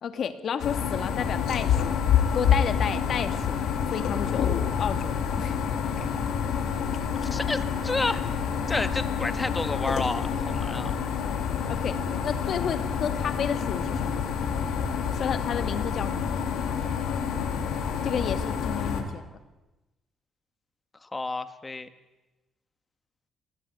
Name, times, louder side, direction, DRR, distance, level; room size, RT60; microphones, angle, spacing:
voice 1, 0.0-2.0 2.3-3.6 3.9-5.6 6.0-6.1 11.7-14.2 15.1-16.4 18.0-19.3, left 7 dB, 60° left, 9 dB, 2.5 m, -32 dB
sound 1, 0.6-19.0, left 7 dB, 80° left, 4.9 m, -28 dB
voice 2, 7.2-8.2 8.7-10.9 21.0-21.9, left 3 dB, 20° left, 11 dB, 2.0 m, -30 dB
28.0 x 20.0 x 9.5 m, 1.1 s
cardioid pair, 90°, 0 cm